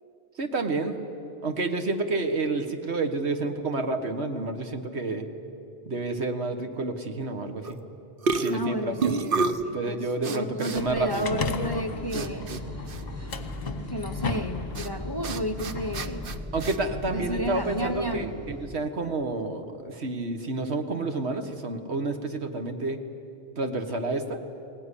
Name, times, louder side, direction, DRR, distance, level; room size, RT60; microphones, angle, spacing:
voice 1, 0.4-1.0 1.4-5.3 5.9-7.8 8.4-9.1 9.7-11.3 16.5-23.0 23.6-24.4, right 2 dB, 70° right, 6 dB, 1.7 m, -29 dB
sound 1, 7.6-7.9 8.2-9.7 10.2-10.8 11.1-11.3 12.1-12.6 12.9-13.0 14.8-14.9 15.2-16.8, right 4 dB, 55° right, 1.0 m, -29 dB
voice 2, 8.5-10.0 10.3-12.5 13.9-16.3 17.1-18.3, equal, 25° left, 8 dB, 0.9 m, -32 dB
sound 2, 10.7-16.4, left 4 dB, 40° left, 1.2 m, -35 dB
sound 3, 11.8-18.7, left 1 dB, 15° right, 0.8 m, -39 dB
21.0 x 18.5 x 9.9 m, 2.8 s
omnidirectional pair, 1.1 m